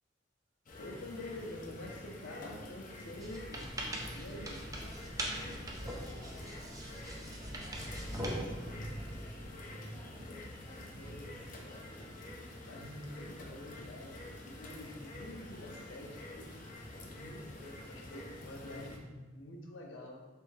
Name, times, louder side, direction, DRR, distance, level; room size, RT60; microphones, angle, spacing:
sound 1, 0.7-19.0, left 1 dB, 45° left, 0.5 m, -47 dB
voice 1, 0.8-3.7 4.1-4.7 11.0-11.2 12.5-16.6 17.0-20.2, left 1 dB, 85° left, 1 dB, 0.6 m, -47 dB
sound 2, 1.6-1.7 2.0-2.1 2.5-2.6 4.0-4.8 5.4-5.6 6.0-6.1 6.4-6.5 6.8-6.9 8.4-8.6 9.0-9.1 10.3-10.4 10.7-10.8 11.3-11.4 12.8-13.6 14.1-14.4 14.7-14.8 15.1-15.2 15.5-15.6, right 1 dB, 75° right, 1.2 m, -60 dB
sound 3, 3.2-9.5, right 1 dB, 20° right, 0.5 m, -42 dB
voice 2, 4.4-10.2 10.6-12.0 14.3-14.9, equal, 30° left, -7 dB, 1.2 m, -58 dB
3.4 x 3.3 x 3.1 m, 1.2 s
head